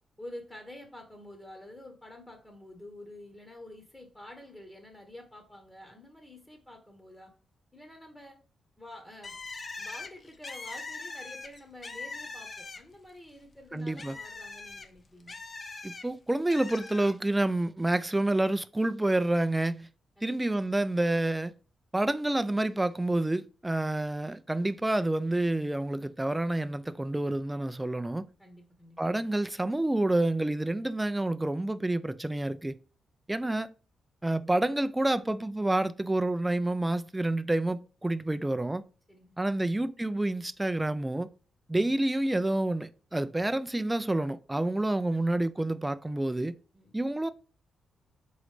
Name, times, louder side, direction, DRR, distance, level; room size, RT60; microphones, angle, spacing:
voice 1, 0.2-7.3 7.7-8.4 8.8-9.4 9.8-15.4 20.2-20.4 28.4-29.1 39.1-39.6 45.1-45.2 45.6-45.7 46.7-47.0, left 1 dB, 15° left, 0.9 m, -48 dB
Bird, 9.2-13.1 13.4-16.0 16.5-17.1, left 3 dB, 45° left, 0.5 m, -42 dB
voice 2, 13.7-14.2 15.8-19.9 20.2-21.5 21.9-28.3 29.0-32.8 33.3-33.7 34.2-38.8 39.4-41.3 41.7-46.6 46.9-47.3, right 1 dB, 15° right, 0.3 m, -28 dB
3.8 x 3.1 x 3.2 m
supercardioid pair, 55°, 0 cm